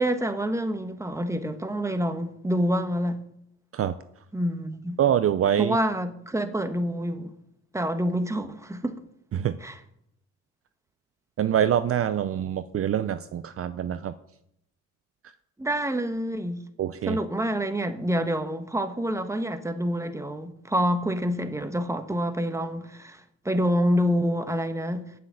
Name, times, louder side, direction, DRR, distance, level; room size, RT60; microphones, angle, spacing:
voice 1, 0.0-3.2 4.3-5.0 5.6-7.3 7.7-9.0 9.6-9.8 15.6-16.6 17.1-25.1, equal, 10° right, 1.2 m, -27 dB
voice 2, 5.0-5.8 9.3-9.5 11.4-14.1 16.8-17.2, right 10 dB, 50° right, 0.6 m, -25 dB
8.9 x 7.7 x 8.9 m
cardioid pair, 90°, 30 cm